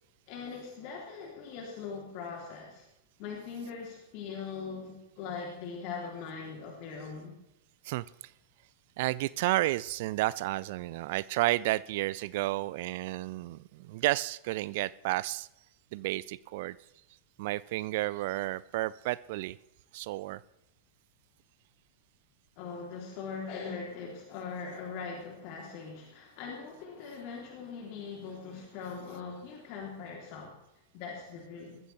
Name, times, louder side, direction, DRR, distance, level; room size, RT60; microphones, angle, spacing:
voice 1, 0.3-2.9 3.2-7.4 22.6-30.6 30.9-31.8, left 5 dB, 45° left, -1 dB, 3.6 m, -41 dB
voice 2, 9.0-15.5 15.9-16.8 17.4-19.6 19.9-20.4, right 18 dB, 50° right, 20 dB, 0.4 m, -31 dB
21.0 x 14.5 x 3.5 m, 0.88 s
figure-of-eight pair, 90°, 0 cm